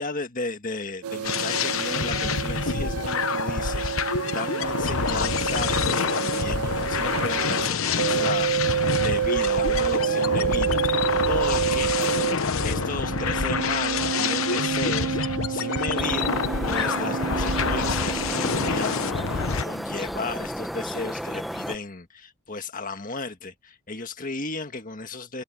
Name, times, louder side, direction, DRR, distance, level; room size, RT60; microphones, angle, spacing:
voice 1, 0.0-25.4, left 3 dB, 40° left, 1.7 m, -35 dB
sound 1, 1.0-7.7 8.0-12.3 12.6-18.8, right 8 dB, 85° right, 0.4 m, -28 dB
sound 2, 1.2-19.6, left 5 dB, 70° left, 0.9 m, -27 dB
sound 3, 16.0-21.8, equal, ahead, 0.8 m, -33 dB
head